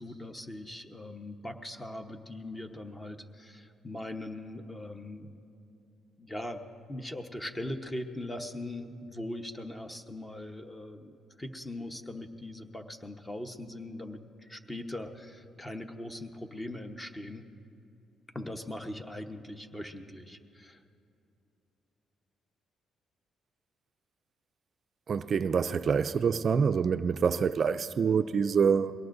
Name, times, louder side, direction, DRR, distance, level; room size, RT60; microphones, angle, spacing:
voice 1, 0.0-5.3 6.2-6.6 6.9-17.5 18.3-20.8, left 1 dB, 15° left, 1.0 m, -40 dB
voice 2, 25.1-28.9, right 6 dB, 50° right, 0.3 m, -26 dB
22.5 x 18.0 x 2.6 m
cardioid pair, 90°, 0 cm